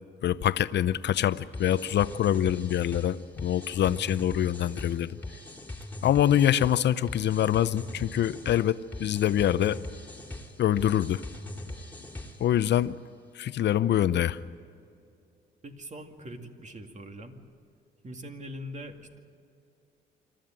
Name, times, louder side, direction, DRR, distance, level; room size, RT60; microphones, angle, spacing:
voice 1, 0.2-5.2 6.0-9.8 10.6-11.2 12.4-13.0 13.3-14.4, left 11 dB, 60° left, 15 dB, 0.7 m, -25 dB
sound 1, 1.5-12.6, left 1 dB, 10° left, 2.8 m, -41 dB
voice 2, 15.6-17.3 18.0-19.2, equal, 35° right, 4 dB, 2.4 m, -42 dB
26.5 x 13.0 x 9.0 m, 2.5 s
cardioid pair, 90°, 20 cm